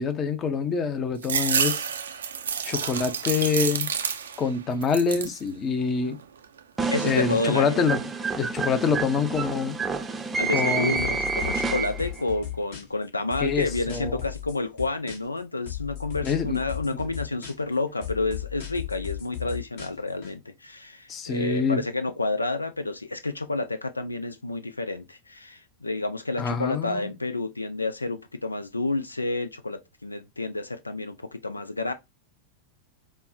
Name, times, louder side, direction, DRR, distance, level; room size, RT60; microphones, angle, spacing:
voice 1, 0.0-1.8 2.6-3.9 4.4-6.2 7.0-8.0 8.3-9.8 10.5-11.1 13.4-14.2 16.2-16.6 21.1-21.8 26.4-27.1, left 5 dB, 30° left, 0.6 m, -26 dB
sound 1, 1.2-4.5 4.8-5.4 5.9-6.6, right 7 dB, 65° right, 0.4 m, -29 dB
sound 2, 6.8-12.2, right 4 dB, 15° right, 0.6 m, -29 dB
voice 2, 6.9-7.8 10.4-31.9, left 2 dB, 80° left, 0.4 m, -30 dB
sound 3, 11.0-13.0 13.3-15.4 15.7-17.7 18.0-20.3, left 11 dB, 55° left, 1.2 m, -36 dB
5.2 x 2.1 x 2.4 m
figure-of-eight pair, 90°, 0 cm